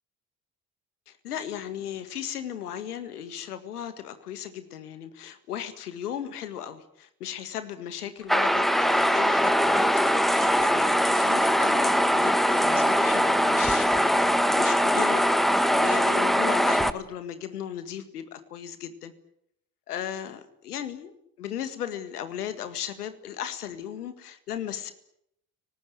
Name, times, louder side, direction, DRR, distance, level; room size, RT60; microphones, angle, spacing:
voice 1, 1.1-15.4 15.7-19.1 19.9-24.9, left 9 dB, 80° left, 11 dB, 1.9 m, -36 dB
sound 1, 8.3-16.9, equal, ahead, 1.5 m, -22 dB
29.5 x 18.5 x 9.3 m, 0.75 s
figure-of-eight pair, 50°, 45 cm